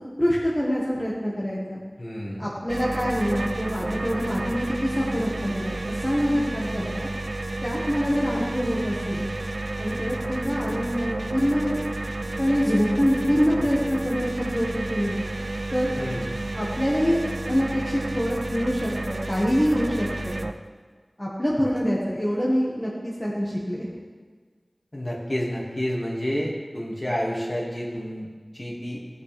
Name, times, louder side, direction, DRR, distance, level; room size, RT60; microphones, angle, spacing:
voice 1, 0.2-1.8 2.4-7.1 7.6-9.3 9.8-11.8 12.4-15.2 15.7-15.9 16.6-17.2 17.5-20.3 21.2-23.9, equal, 25° left, -6 dB, 1.7 m, -25 dB
voice 2, 2.0-2.5 16.0-16.3 24.9-28.3 28.5-29.0, equal, 45° left, -4 dB, 2.3 m, -29 dB
sound 1, 2.7-20.5, right 2 dB, 75° right, 0.5 m, -31 dB
15.0 x 6.7 x 3.5 m, 1.5 s
wide cardioid pair, 50°, 0 cm